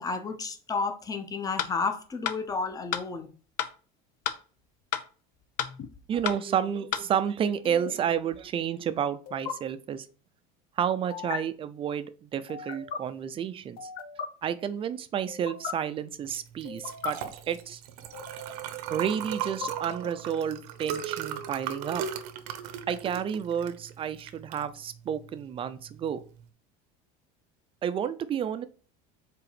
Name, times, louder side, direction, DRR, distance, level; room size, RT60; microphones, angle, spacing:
voice 1, 0.0-3.3, left 4 dB, 20° left, 0.8 m, -31 dB
sound 1, 1.6-1.7 2.2-2.4 2.9-3.0 3.6-3.7 4.2-4.4 4.9-5.1 5.6-5.7 6.2-6.4 6.9-7.0, left 10 dB, 80° left, 0.7 m, -29 dB
sound 2, 5.6-5.9 7.6-7.9 9.3-9.5 11.1-11.4 12.5-13.0 13.8-14.3 15.3-15.7 16.6-17.1 18.1-18.7 19.4-20.3, left 7 dB, 50° left, 0.9 m, -38 dB
voice 2, 6.1-10.1 10.8-13.9 14.4-17.2 17.5-17.8 18.9-22.0 22.9-26.2 27.8-28.7, right 8 dB, 25° right, 0.5 m, -30 dB
Liquid, 16.3-26.4, right 9 dB, 80° right, 0.9 m, -38 dB
4.8 x 4.1 x 5.0 m
cardioid pair, 140°, 20 cm